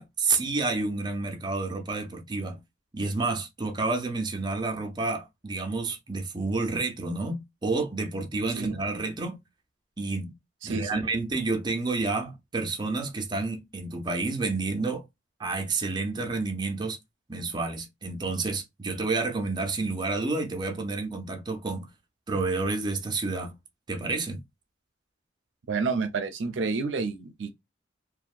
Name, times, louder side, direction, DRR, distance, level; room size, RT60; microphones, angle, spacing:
voice 1, 0.0-2.6 2.9-9.4 10.0-10.3 10.6-15.1 15.4-17.0 17.3-21.9 22.3-23.6 23.9-24.4, right 3 dB, 25° right, 0.5 m, -29 dB
voice 2, 10.6-11.0 25.7-27.6, right 4 dB, 75° right, 0.5 m, -29 dB
2.7 x 2.1 x 2.4 m
head